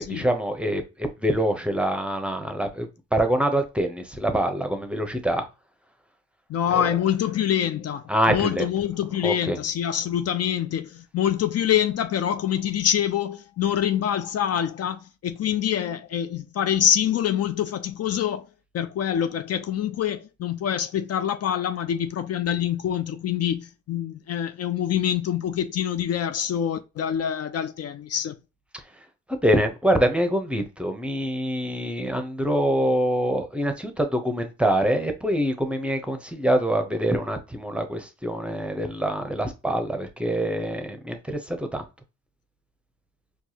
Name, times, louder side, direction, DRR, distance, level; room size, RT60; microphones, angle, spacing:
voice 1, 0.0-5.4 8.1-8.7 9.2-9.6 29.4-41.8, right 1 dB, 5° right, 0.8 m, -25 dB
voice 2, 6.5-18.5 18.7-28.3, left 10 dB, 55° left, 0.5 m, -25 dB
4.5 x 2.4 x 2.8 m
cardioid pair, 90°, 30 cm